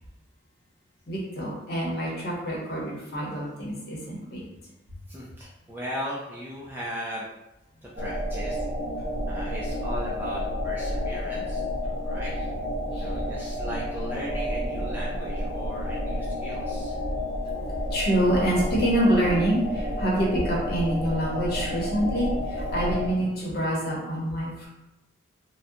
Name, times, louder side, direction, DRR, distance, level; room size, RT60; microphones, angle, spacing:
voice 1, 1.1-4.4 12.9-13.1 17.9-24.7, right 1 dB, 50° left, -4 dB, 0.9 m, -26 dB
voice 2, 5.1-7.3 7.8-8.6 9.3-11.6 12.0-12.3 13.0-17.0, equal, 10° right, -6 dB, 0.4 m, -37 dB
sound 1, 8.0-23.1, equal, 50° right, 0.8 m, -30 dB
3.6 x 2.2 x 2.7 m, 0.94 s
head